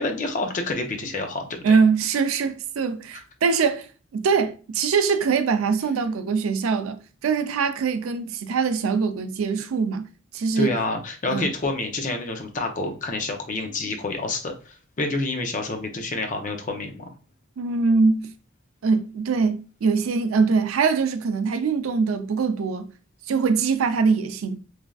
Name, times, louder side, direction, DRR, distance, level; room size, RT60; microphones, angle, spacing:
voice 1, 0.0-1.8 3.1-3.2 10.6-17.1, left 2 dB, 40° left, 0.5 m, -28 dB
voice 2, 1.6-3.9 4.1-10.1 10.3-10.8 11.3-11.5 17.6-18.3 18.8-22.9 23.3-24.6, right 5 dB, 80° right, 0.4 m, -23 dB
3.2 x 2.5 x 2.3 m
head